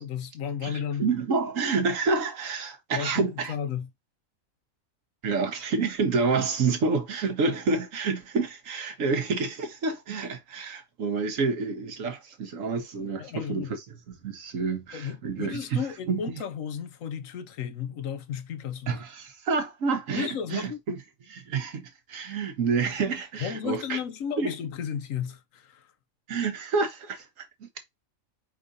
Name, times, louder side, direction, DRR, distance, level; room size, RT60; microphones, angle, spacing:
voice 1, 0.0-1.0 2.9-3.9 13.2-13.8 14.9-19.0 20.2-20.8 23.4-25.9, left 8 dB, 75° left, 1.2 m, -34 dB
voice 2, 0.6-3.5 5.2-13.8 14.2-16.4 18.9-21.0 21.3-24.0 24.4-24.5 26.3-27.7, right 4 dB, 70° right, 1.4 m, -28 dB
5.0 x 3.7 x 2.5 m
omnidirectional pair, 1.4 m